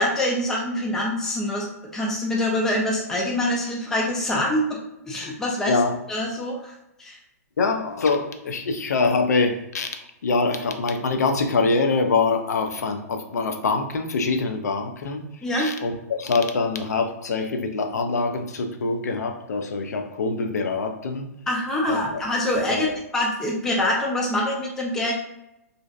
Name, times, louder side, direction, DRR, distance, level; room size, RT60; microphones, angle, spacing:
voice 1, 0.0-1.7 1.9-4.8 5.1-5.8 6.1-6.7 7.0-7.2 15.4-15.7 21.5-22.9 23.1-25.1, left 1 dB, 5° left, -2 dB, 0.3 m, -25 dB
voice 2, 7.6-15.3 15.6-21.3 21.9-22.2 22.7-22.9, left 4 dB, 80° left, 6 dB, 0.4 m, -24 dB
2.5 x 2.0 x 2.4 m, 0.88 s
hypercardioid pair, 135°, 9 cm